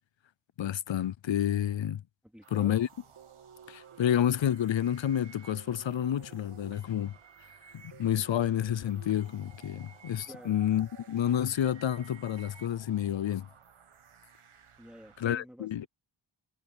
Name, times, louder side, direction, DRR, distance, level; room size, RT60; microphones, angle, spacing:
voice 1, 0.6-2.0 2.5-2.9 3.7-7.1 7.7-13.5 15.2-15.9, left 10 dB, 65° left, 0.6 m, -29 dB
voice 2, 2.3-2.8 10.3-10.6 14.8-15.7, equal, ahead, 3.4 m, -49 dB
sound 1, 2.4-15.2, right 7 dB, 85° right, 1.6 m, -59 dB
sound 2, 3.1-12.7, right 7 dB, 60° right, 2.9 m, -54 dB
wide cardioid pair, 110°, 49 cm